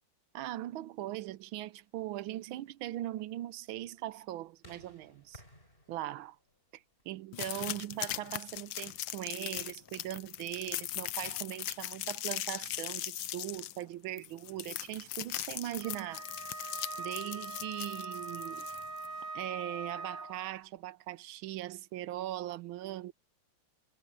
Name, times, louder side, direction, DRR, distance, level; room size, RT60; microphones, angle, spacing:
voice 1, 0.3-5.4 5.9-6.4 6.7-16.3 17.0-18.7 19.3-23.1, right 14 dB, 75° right, 1.4 m, -40 dB
sound 1, 1.9-11.0, left 1 dB, 25° left, 7.9 m, -63 dB
sound 2, 7.3-19.1, left 14 dB, 70° left, 1.3 m, -39 dB
Wind instrument woodwind instrument, 15.8-20.5, right 3 dB, 35° right, 3.9 m, -42 dB
omnidirectional pair, 2.4 m